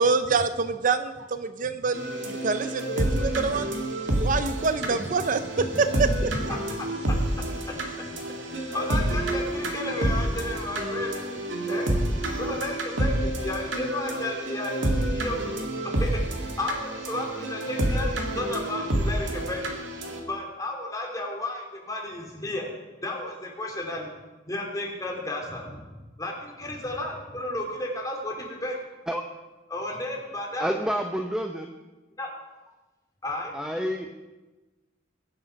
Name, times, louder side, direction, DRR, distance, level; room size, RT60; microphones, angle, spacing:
voice 1, 0.0-3.7 4.2-6.1, right 4 dB, 45° right, 11 dB, 0.5 m, -26 dB
sound 1, 1.9-20.2, right 1 dB, 85° right, 2.2 m, -28 dB
voice 2, 6.3-6.6 7.1-8.1 8.7-11.4 11.7-19.8 20.3-22.7 23.0-24.1 24.5-28.8 29.7-30.7 32.2-32.3 33.2-33.5, left 1 dB, 20° left, -1 dB, 2.9 m, -33 dB
voice 3, 30.6-31.7 33.5-34.1, equal, 5° right, 4 dB, 0.7 m, -28 dB
21.0 x 8.0 x 5.9 m, 1.2 s
head